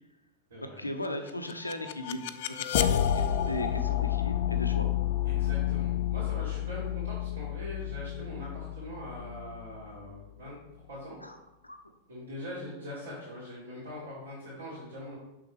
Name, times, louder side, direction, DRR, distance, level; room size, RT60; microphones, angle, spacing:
voice 1, 0.6-4.9 11.2-11.4 11.6-11.8, left 1 dB, 85° left, 6 dB, 0.7 m, -37 dB
sound 1, 1.3-10.2, left 11 dB, 50° left, 0.4 m, -30 dB
voice 2, 5.2-10.6 10.9-11.2 12.1-15.1, equal, 70° right, -9 dB, 2.5 m, -42 dB
6.7 x 5.7 x 3.5 m, 0.98 s
figure-of-eight pair, 90°, 0 cm